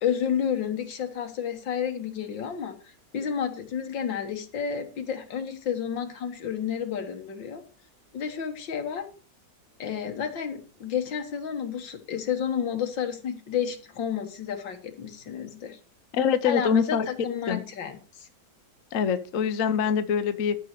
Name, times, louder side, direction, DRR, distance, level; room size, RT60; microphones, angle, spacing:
voice 1, 0.0-7.6 8.1-9.1 9.8-15.8 16.4-18.3, left 8 dB, 80° left, 7 dB, 2.2 m, -31 dB
voice 2, 16.1-17.1 17.5-17.6 18.9-20.6, left 6 dB, 55° left, 10 dB, 1.1 m, -24 dB
13.0 x 5.5 x 6.7 m, 0.39 s
omnidirectional pair, 2.0 m